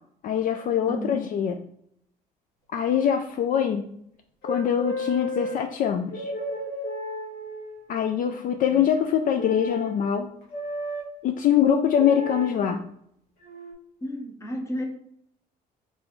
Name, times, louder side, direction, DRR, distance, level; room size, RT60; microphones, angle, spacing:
voice 1, 0.2-1.5 2.7-3.9 4.4-6.3 7.9-10.3 11.2-12.8, left 8 dB, 55° left, 6 dB, 0.4 m, -23 dB
voice 2, 0.9-1.2 8.7-8.8 14.0-14.8, equal, 15° left, 2 dB, 0.9 m, -32 dB
sound 1, 4.4-5.6 6.1-7.8 9.4-9.9 10.5-11.0 12.0-12.5 13.4-13.7, left 1 dB, 80° left, 1.4 m, -32 dB
3.9 x 3.7 x 3.1 m, 0.71 s
cardioid pair, 110°, 17 cm